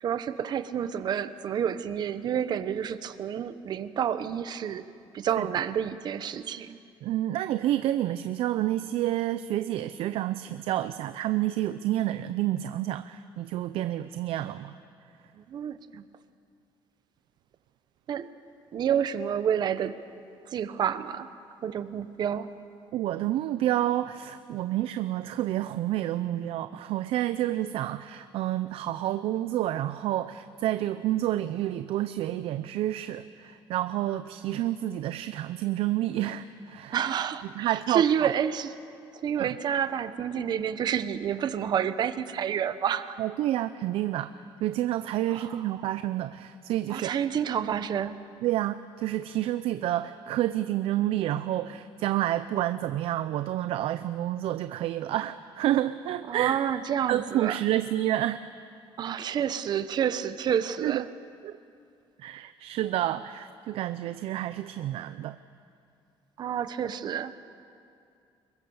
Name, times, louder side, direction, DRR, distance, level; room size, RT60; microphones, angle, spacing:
voice 1, 0.0-4.8 5.1-6.8 15.3-16.0 18.1-18.3 18.7-20.0 20.5-21.3 21.6-22.5 36.9-38.7 39.1-43.2 45.3-45.7 46.9-48.2 56.3-57.6 59.0-61.1 66.4-67.3, right 8 dB, 45° right, 12 dB, 1.0 m, -29 dB
voice 2, 7.0-14.8 22.9-37.0 37.6-38.3 39.4-39.5 43.2-44.3 44.6-47.1 48.4-56.6 57.1-58.4 60.8-61.0 61.4-61.6 62.2-65.4, right 13 dB, 75° right, 12 dB, 0.6 m, -29 dB
26.0 x 23.0 x 7.1 m, 2.4 s
cardioid pair, 155°, 10 cm